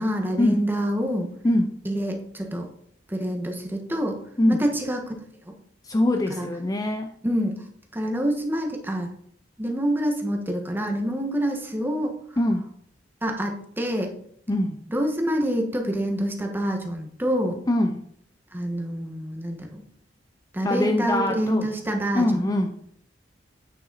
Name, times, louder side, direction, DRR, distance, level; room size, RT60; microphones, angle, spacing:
voice 1, 0.0-1.3 1.8-2.7 3.1-4.2 4.5-5.2 5.5-5.6 6.3-6.5 7.2-7.6 7.9-9.1 9.6-12.1 13.2-14.1 14.9-17.6 18.5-19.8 20.5-22.5, equal, 10° right, 3 dB, 1.3 m, -26 dB
voice 2, 1.4-1.8 4.4-4.6 5.8-7.1 12.4-12.7 14.5-14.8 17.7-18.0 20.6-21.7 22.1-22.8, left 1 dB, 20° left, 6 dB, 0.5 m, -23 dB
8.9 x 5.9 x 4.1 m, 0.63 s
head